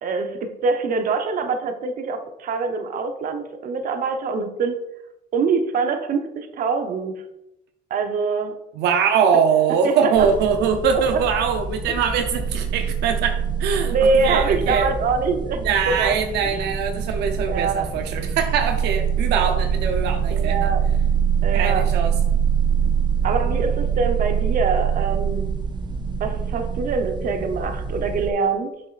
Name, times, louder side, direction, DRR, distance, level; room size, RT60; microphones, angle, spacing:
voice 1, 0.0-4.8 5.3-7.2 7.9-8.6 9.8-10.1 11.1-11.2 13.8-16.1 16.4-16.5 17.5-17.9 20.3-20.8 21.4-21.9 23.2-25.6 26.2-28.7, right 4 dB, 55° right, 6 dB, 0.8 m, -24 dB
voice 2, 8.8-14.0 14.2-14.9 15.6-20.7 21.5-22.1, right 6 dB, 80° right, 5 dB, 0.6 m, -22 dB
sound 1, 10.2-28.3, right 7 dB, 25° right, 0.7 m, -24 dB
7.2 x 6.2 x 2.5 m, 0.88 s
cardioid pair, 110°, 17 cm